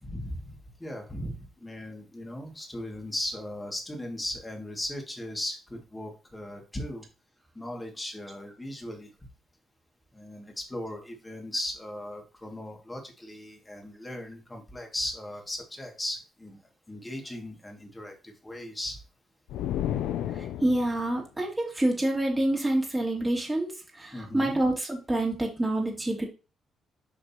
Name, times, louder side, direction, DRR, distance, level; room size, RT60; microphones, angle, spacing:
voice 1, 0.0-7.0 7.5-9.1 10.1-16.6 16.9-19.0 24.1-24.6, left 1 dB, 15° left, 2 dB, 2.2 m, -37 dB
sound 1, 19.5-21.1, left 11 dB, 90° left, 0.4 m, -31 dB
voice 2, 20.3-26.2, right 1 dB, 10° right, -1 dB, 2.4 m, -27 dB
7.9 x 5.3 x 2.9 m, 0.31 s
cardioid pair, 90°, 0 cm